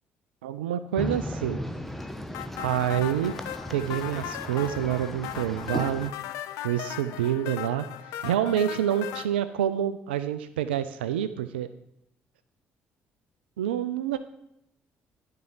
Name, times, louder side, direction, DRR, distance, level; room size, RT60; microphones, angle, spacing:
voice 1, 0.4-1.6 2.6-3.3 3.7-6.1 6.6-7.9 8.2-11.7 13.6-14.2, right 10 dB, 75° right, 13 dB, 0.3 m, -27 dB
sound 1, 1.0-6.1, equal, 5° left, 1.0 m, -36 dB
sound 2, 2.3-9.3, left 12 dB, 65° left, 0.5 m, -37 dB
12.0 x 5.6 x 3.8 m, 0.82 s
figure-of-eight pair, 45°, 6 cm